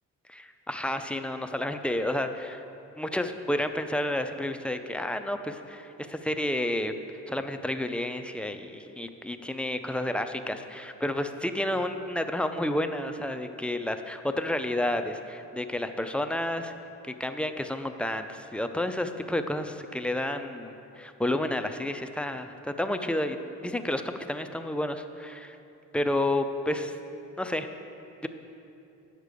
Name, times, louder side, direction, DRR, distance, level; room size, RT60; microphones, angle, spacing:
voice 1, 0.3-2.6 3.0-6.9 7.3-16.7 17.0-23.4 23.6-25.6 25.9-26.9 27.4-27.7, left 1 dB, 5° left, 7 dB, 0.4 m, -30 dB
9.1 x 6.6 x 5.0 m, 2.7 s
cardioid pair, 90°, 30 cm